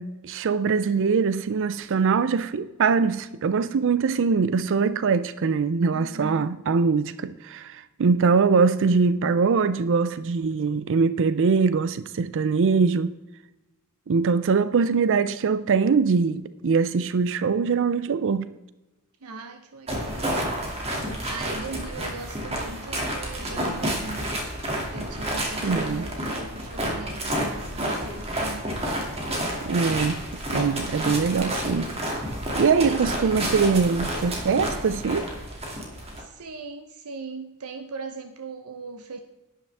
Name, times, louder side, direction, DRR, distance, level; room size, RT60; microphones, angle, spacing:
voice 1, 0.0-13.1 14.1-18.5 25.6-26.1 29.6-30.2 30.5-31.9 32.6-35.3, right 5 dB, 60° right, 0.4 m, -22 dB
voice 2, 5.9-6.4 19.2-20.3 21.3-24.3 24.9-28.9 32.8-33.5 33.8-34.0 36.2-39.2, right 4 dB, 80° right, 0.8 m, -39 dB
sound 1, 19.9-36.2, right 1 dB, 30° right, 2.5 m, -30 dB
12.0 x 10.5 x 3.5 m
head